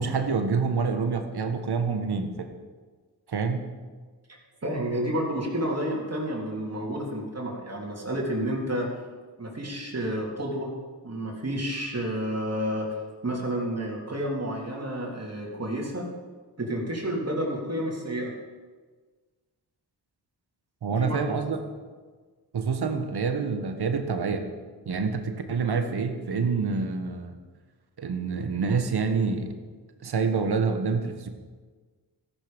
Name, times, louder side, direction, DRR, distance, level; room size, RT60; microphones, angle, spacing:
voice 1, 0.0-2.5 3.3-3.6 20.8-21.6 22.5-24.5 24.8-27.3 28.0-29.5 30.0-31.3, right 5 dB, 60° right, 7 dB, 1.5 m, -27 dB
voice 2, 4.6-8.9 9.4-10.7 11.0-12.9 13.2-16.1 16.6-18.3 20.8-21.2, right 1 dB, 35° right, -2 dB, 3.4 m, -30 dB
13.0 x 12.0 x 5.3 m, 1.4 s
cardioid pair, 55°, 43 cm